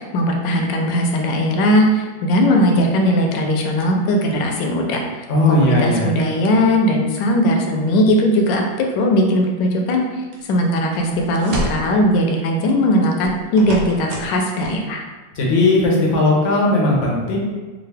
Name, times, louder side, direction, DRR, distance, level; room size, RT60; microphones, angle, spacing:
voice 1, 0.0-10.0 10.5-15.0, equal, 75° left, 2 dB, 1.2 m, -18 dB
voice 2, 5.3-6.1 15.4-17.4, left 2 dB, 60° left, -2 dB, 0.8 m, -17 dB
sound 1, 10.3-10.5 11.0-11.9 13.2-14.4 14.6-14.7, right 1 dB, 65° right, 1.2 m, -28 dB
3.7 x 2.4 x 3.3 m, 1.3 s
omnidirectional pair, 2.1 m